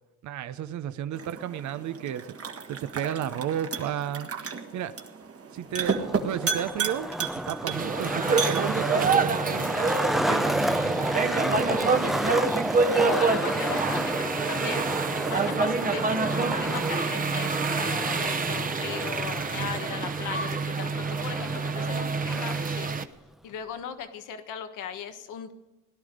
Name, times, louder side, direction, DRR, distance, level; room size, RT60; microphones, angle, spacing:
voice 1, 0.2-2.3 2.7-4.3 4.7-4.9 5.5-9.7 10.1-11.9 19.5-19.7, right 10 dB, 70° right, 11 dB, 0.8 m, -33 dB
sound 1, 1.1-9.1, right 6 dB, 50° right, 1.7 m, -33 dB
Skateboard, 5.7-22.7, equal, ahead, 0.5 m, -31 dB
sound 2, 7.7-23.0, right 4 dB, 30° right, 0.9 m, -27 dB
voice 2, 12.9-14.9 15.3-23.0 23.4-25.5, left 8 dB, 90° left, 8 dB, 1.3 m, -37 dB
17.5 x 11.5 x 5.2 m, 1.1 s
cardioid pair, 90°, 30 cm